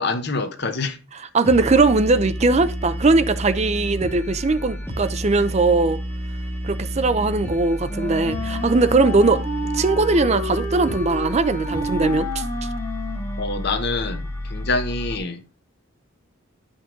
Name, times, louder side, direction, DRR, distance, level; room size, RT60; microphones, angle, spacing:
voice 1, 0.0-1.0 13.4-15.4, left 3 dB, 55° left, 1.0 m, -26 dB
voice 2, 1.1-6.0 6.6-9.4 9.7-12.4, right 3 dB, 35° right, 0.5 m, -20 dB
sound 1, 1.4-15.2, equal, 10° left, 1.2 m, -30 dB
Wind instrument woodwind instrument, 7.8-13.8, left 1 dB, 30° left, 1.8 m, -30 dB
10.5 x 5.3 x 3.7 m
head